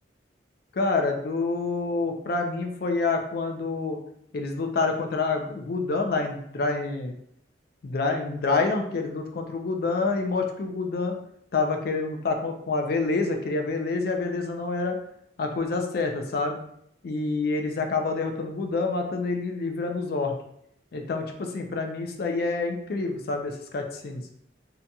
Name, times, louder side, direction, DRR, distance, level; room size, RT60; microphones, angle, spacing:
voice 1, 0.7-4.0 4.3-7.1 7.8-11.2 11.5-15.0 15.4-16.6 17.0-20.3 20.9-24.2, left 3 dB, 55° left, 4 dB, 0.4 m, -27 dB
2.7 x 2.5 x 2.2 m, 0.71 s
head